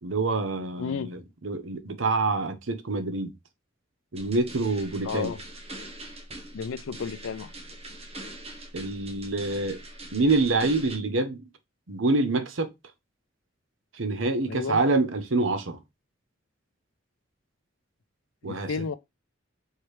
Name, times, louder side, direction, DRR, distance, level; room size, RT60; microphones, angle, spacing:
voice 1, 0.0-3.3 4.1-5.3 8.7-9.8 10.1-11.4 11.9-12.7 13.9-15.8 18.4-18.7, right 3 dB, 75° right, 0.8 m, -26 dB
voice 2, 0.8-1.2 5.0-5.4 6.5-7.5 14.5-14.8 18.4-19.0, left 5 dB, 85° left, 0.4 m, -32 dB
sound 1, 4.2-11.0, right 1 dB, 30° right, 0.9 m, -42 dB
4.6 x 3.2 x 3.1 m
head